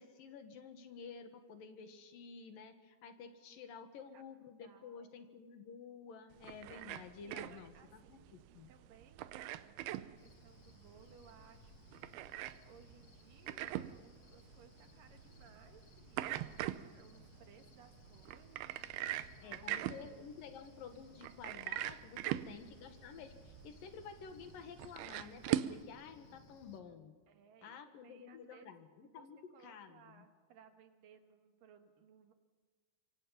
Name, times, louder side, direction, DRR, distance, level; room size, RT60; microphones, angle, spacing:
voice 1, 0.0-8.7 19.4-27.1 27.6-30.3, left 6 dB, 70° left, 8 dB, 3.1 m, -52 dB
voice 2, 4.6-5.1 7.2-19.7 24.6-24.7 27.3-28.7 29.0-29.3 29.5-32.3, right 7 dB, 65° right, 6 dB, 3.1 m, -63 dB
sound 1, 6.3-25.8, right 13 dB, 90° right, 2.8 m, -43 dB
Cricket, 10.2-26.8, left 4 dB, 50° left, 2.5 m, -62 dB
26.0 x 24.5 x 5.7 m, 1.5 s
omnidirectional pair, 4.4 m